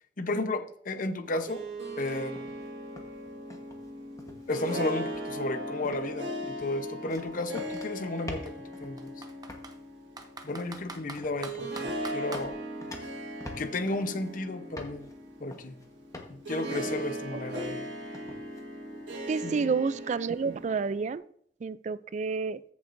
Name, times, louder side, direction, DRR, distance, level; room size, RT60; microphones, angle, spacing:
voice 1, 0.2-1.6 2.0-2.5 4.5-8.5 8.8-9.1 10.4-12.5 13.6-15.1 15.4-15.8 16.3-17.9 19.4-19.7, left 2 dB, 50° left, 9 dB, 0.8 m, -33 dB
Harp, 1.3-21.1, equal, 85° right, 1.6 m, -38 dB
sound 1, 2.4-2.7 3.0-3.9 4.2-4.6 5.0-5.5 5.8-6.2 6.4-9.1 9.5-9.8 10.4-10.8 11.2-11.4 11.8-12.1 12.3-14.3 14.8-15.1 15.5-15.9 16.1-16.5 16.9-17.2 17.6-17.9 18.1-18.6, left 1 dB, 20° left, 1.1 m, -46 dB
Computer keyboard, 4.2-4.3 4.6-6.5 7.3-7.4 7.8-7.9 8.5-9.8 10.2-12.5, right 3 dB, 20° right, 0.8 m, -44 dB
voice 2, 17.3-17.6 19.3-21.2 21.6-22.6, right 5 dB, 40° right, 18 dB, 0.3 m, -30 dB
14.0 x 7.1 x 2.6 m, 0.64 s
head